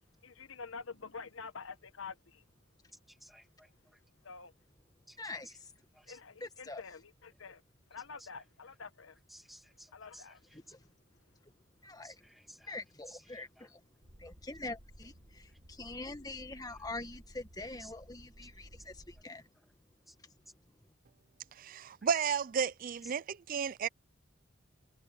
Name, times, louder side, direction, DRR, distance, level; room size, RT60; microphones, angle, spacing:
voice 1, 0.2-2.4 4.2-4.5 6.1-7.6 7.9-9.2 9.9-10.4, left 5 dB, 80° left, 1.1 m, -47 dB
voice 2, 3.1-3.7 5.1-5.2 5.9-6.2 8.2-8.3 9.3-10.4 12.0-12.8 13.1-13.7 17.8-17.9 20.1-20.2, equal, ahead, 2.3 m, -56 dB
voice 3, 5.2-5.7 6.4-6.8 10.5-10.9 11.4-11.5 11.8-12.2 12.7-13.8 14.2-19.5 20.2-20.3, left 2 dB, 20° left, 1.6 m, -44 dB
sound 1, 14.0-19.2, equal, 75° right, 2.9 m, -56 dB
voice 4, 21.5-23.9, right 6 dB, 45° right, 0.4 m, -33 dB
head